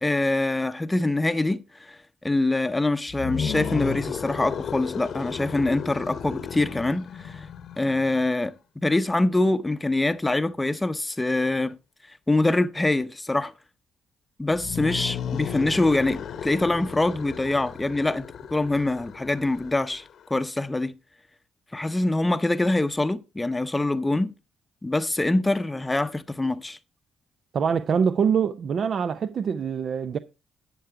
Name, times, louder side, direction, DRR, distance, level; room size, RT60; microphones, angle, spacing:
voice 1, 0.0-7.5 7.8-8.5 8.8-11.8 12.1-13.5 14.4-20.0 20.3-20.9 21.7-24.3 24.8-26.8, left 2 dB, 15° left, 0.7 m, -24 dB
sound 1, 3.1-8.3 14.5-20.2, left 8 dB, 65° left, 0.9 m, -34 dB
voice 2, 27.5-30.2, right 6 dB, 55° right, 0.5 m, -24 dB
11.5 x 6.8 x 4.6 m
cardioid pair, 90°, 0 cm